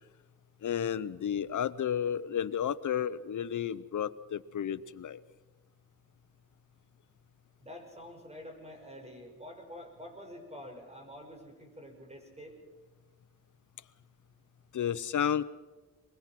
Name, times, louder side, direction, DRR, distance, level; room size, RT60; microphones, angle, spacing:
voice 1, 0.6-5.2 14.7-15.4, left 9 dB, 60° left, 15 dB, 0.9 m, -32 dB
voice 2, 7.6-12.6, equal, 20° right, 3 dB, 5.9 m, -47 dB
23.5 x 21.5 x 6.0 m, 1.2 s
cardioid pair, 85°, 34 cm